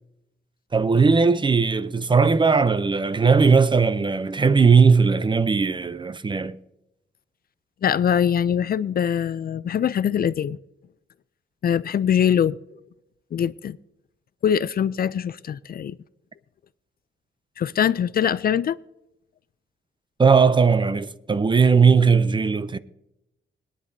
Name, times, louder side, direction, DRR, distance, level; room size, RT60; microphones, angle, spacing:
voice 1, 0.7-6.6 20.2-22.8, right 5 dB, 25° right, 0.5 m, -18 dB
voice 2, 7.8-10.6 11.6-12.6 13.3-13.8 14.4-16.0 17.6-18.8, left 8 dB, 50° left, 0.4 m, -22 dB
21.5 x 10.0 x 2.7 m
wide cardioid pair, 110°, 19 cm